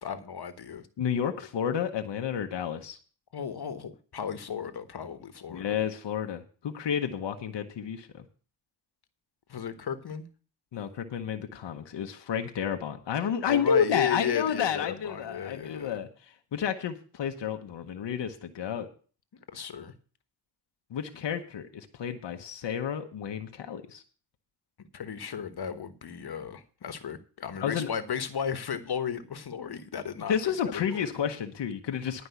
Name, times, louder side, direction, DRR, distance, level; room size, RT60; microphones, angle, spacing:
voice 1, 0.0-0.8 3.3-5.8 9.5-10.3 13.5-16.0 19.3-19.9 24.9-31.1, left 7 dB, 65° left, 11 dB, 1.3 m, -34 dB
voice 2, 1.0-3.0 5.5-8.2 10.7-18.9 20.9-24.0 27.6-27.9 30.3-32.3, left 8 dB, 90° left, 6 dB, 1.1 m, -31 dB
11.5 x 5.2 x 8.1 m, 0.39 s
cardioid pair, 70°, 42 cm